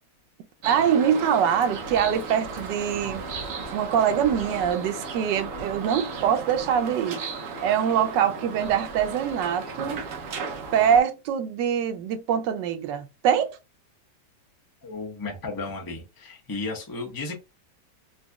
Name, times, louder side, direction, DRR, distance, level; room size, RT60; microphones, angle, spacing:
sound 1, 0.6-11.0, right 4 dB, 60° right, 1.0 m, -35 dB
voice 1, 0.6-3.2 3.7-7.2 7.6-10.1 10.7-13.5, right 8 dB, 90° right, 1.3 m, -24 dB
voice 2, 14.8-17.3, left 3 dB, 15° left, 0.7 m, -34 dB
4.0 x 2.7 x 2.2 m
omnidirectional pair, 1.9 m